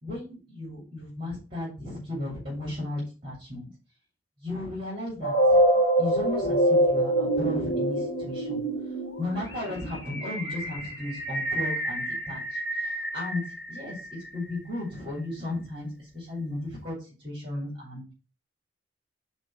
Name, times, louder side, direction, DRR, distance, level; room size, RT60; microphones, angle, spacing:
voice 1, 0.0-3.7 4.4-5.6 6.0-13.4 13.7-18.1, left 2 dB, 25° right, -6 dB, 3.0 m, -35 dB
sound 1, 5.2-14.2, right 1 dB, 70° left, 2.3 m, -26 dB
5.2 x 4.3 x 5.7 m, 0.33 s
head